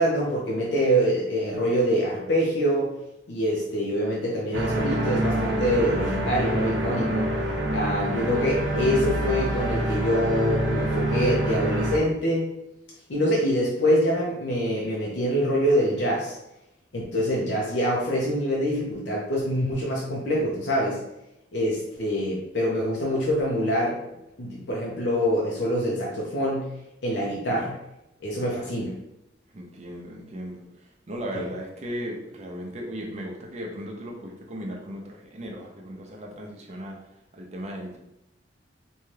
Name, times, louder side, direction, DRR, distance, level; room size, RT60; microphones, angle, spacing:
voice 1, 0.0-2.9 3.3-7.3 7.7-12.5 13.1-16.3 16.9-21.0 21.5-24.0 24.4-26.7 27.0-27.8 28.2-28.9 31.3-31.4, equal, 70° left, -4 dB, 0.6 m, -25 dB
sound 1, 4.5-12.0, right 1 dB, 85° right, 0.7 m, -26 dB
voice 2, 29.5-37.0 37.3-38.0, equal, 40° right, 0 dB, 0.5 m, -36 dB
2.7 x 2.3 x 3.2 m, 0.87 s
head